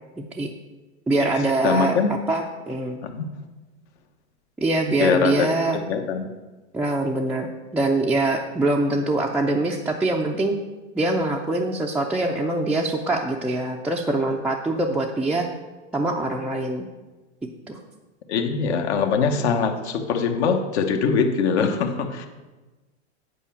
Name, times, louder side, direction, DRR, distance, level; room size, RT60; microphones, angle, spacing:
voice 1, 0.2-0.5 1.1-1.9 2.3-3.0 4.6-5.8 6.7-10.6 11.0-15.5 15.9-16.9 17.7-17.8, right 2 dB, 5° right, -3 dB, 0.4 m, -24 dB
voice 2, 1.6-2.1 3.0-3.3 5.0-5.5 5.9-6.3 18.3-22.3, left 5 dB, 70° left, 5 dB, 1.2 m, -22 dB
8.4 x 4.7 x 7.0 m, 1.2 s
hypercardioid pair, 120°, 35 cm